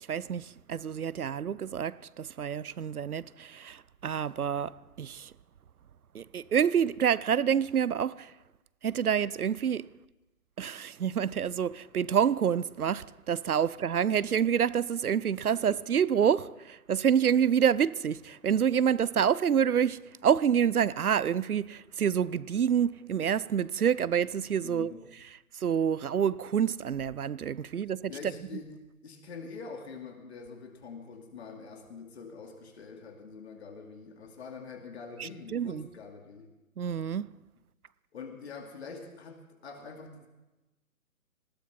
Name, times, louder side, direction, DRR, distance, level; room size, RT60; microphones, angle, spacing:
voice 1, 0.1-5.3 6.1-8.3 8.8-9.9 10.6-24.9 25.6-28.1 35.2-35.8 36.8-37.3, right 8 dB, 85° right, 0.6 m, -27 dB
voice 2, 24.6-25.0 28.1-28.7 29.0-36.5 38.1-40.3, left 4 dB, 45° left, 2.4 m, -45 dB
19.5 x 16.0 x 4.3 m
figure-of-eight pair, 140°, 44 cm